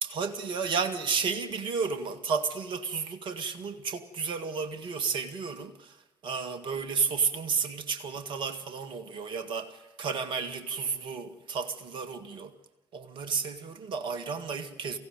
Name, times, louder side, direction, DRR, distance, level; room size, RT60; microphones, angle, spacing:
voice 1, 0.0-6.0 6.2-12.5 12.9-15.0, right 5 dB, 55° right, 1.8 m, -32 dB
23.5 x 16.0 x 9.2 m
figure-of-eight pair, 45°, 10 cm